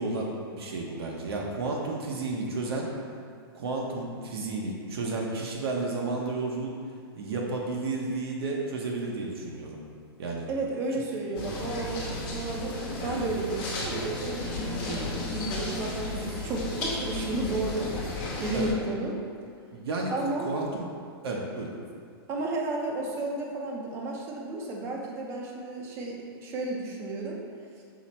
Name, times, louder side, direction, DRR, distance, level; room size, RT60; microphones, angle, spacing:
voice 1, 0.0-2.9 3.5-6.7 7.2-9.8 10.2-10.5 18.5-18.7 19.7-20.9 21.2-21.7, right 3 dB, 70° right, -1 dB, 0.7 m, -32 dB
voice 2, 10.5-19.2 20.1-20.5 22.3-27.4, right 2 dB, 20° right, 0 dB, 0.5 m, -33 dB
sound 1, 11.3-18.7, left 2 dB, 25° left, 0.9 m, -34 dB
5.9 x 2.0 x 4.1 m, 2.2 s
hypercardioid pair, 160°, 13 cm